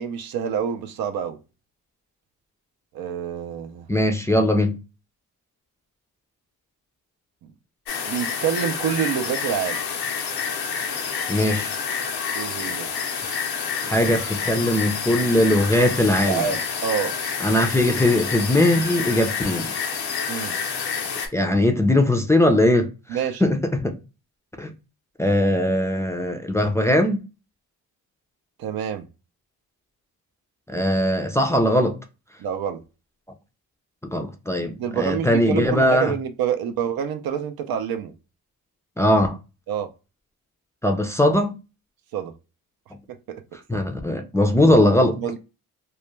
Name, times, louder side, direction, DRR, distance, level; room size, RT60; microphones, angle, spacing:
voice 1, 0.0-1.4 2.9-3.9 8.0-9.8 12.4-12.9 16.3-17.1 20.3-20.6 23.1-23.4 28.6-29.0 32.4-32.8 34.8-38.1 39.7-39.9 42.1-42.3 43.3-43.4 43.7-43.8 45.2-45.4, right 8 dB, 70° right, 0.5 m, -27 dB
voice 2, 3.9-4.8 11.3-11.7 13.8-16.5 17.4-19.7 21.3-22.9 23.4-24.0 24.6-24.7 25.2-27.2 30.7-32.0 34.0-36.1 39.0-39.4 40.8-41.5 43.7-45.2, left 1 dB, 10° left, 0.4 m, -20 dB
sound 1, 7.9-21.3, left 6 dB, 90° left, 0.7 m, -28 dB
2.3 x 2.2 x 2.9 m
cardioid pair, 75°, 37 cm